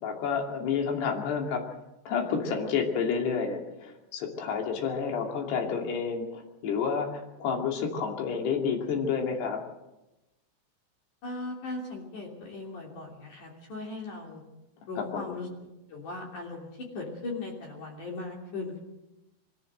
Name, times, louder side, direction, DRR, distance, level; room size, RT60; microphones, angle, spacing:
voice 1, 0.0-1.6 2.1-9.6 15.0-15.4, left 6 dB, 60° left, 2 dB, 4.5 m, -30 dB
voice 2, 4.5-4.9 11.2-14.4 14.9-15.5 15.9-16.7 16.9-18.8, left 3 dB, 45° left, 0 dB, 4.1 m, -38 dB
23.5 x 14.5 x 7.9 m, 0.98 s
omnidirectional pair, 5.5 m